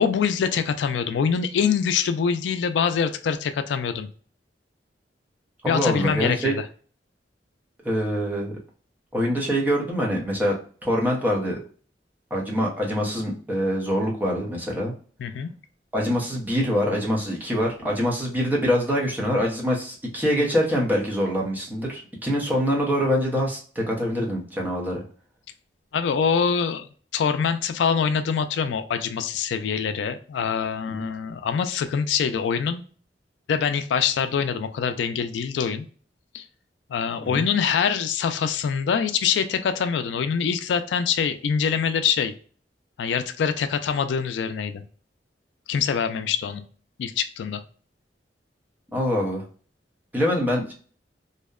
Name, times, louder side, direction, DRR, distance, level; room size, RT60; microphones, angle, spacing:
voice 1, 0.0-4.1 5.7-6.6 15.2-15.5 25.9-26.9 27.1-32.8 33.5-35.8 36.3-36.4 36.9-42.3 43.0-44.8 45.7-46.6 47.0-47.6, left 6 dB, 85° left, 10 dB, 0.3 m, -24 dB
voice 2, 5.6-6.5 7.8-8.5 9.1-11.6 12.3-14.9 15.9-25.0 30.9-31.0 37.2-37.4 48.9-49.4 50.1-50.7, equal, 10° right, -2 dB, 0.7 m, -24 dB
2.7 x 2.1 x 2.2 m, 0.43 s
head